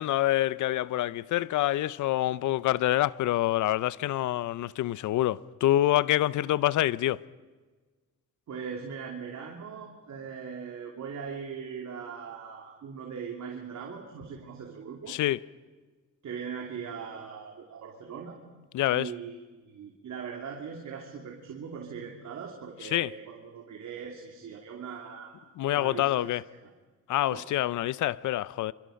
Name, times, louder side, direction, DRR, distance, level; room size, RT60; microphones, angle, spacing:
voice 1, 0.0-7.2 15.1-15.4 18.7-19.1 22.8-23.1 25.6-26.4 27.1-28.7, left 14 dB, 70° left, 0.7 m, -26 dB
voice 2, 8.5-15.2 16.2-18.4 18.9-19.4 19.6-25.4 25.7-26.3 26.6-26.7 27.3-27.5 27.8-27.9, right 6 dB, 60° right, 3.0 m, -40 dB
26.5 x 25.0 x 5.3 m
cardioid pair, 75°, 31 cm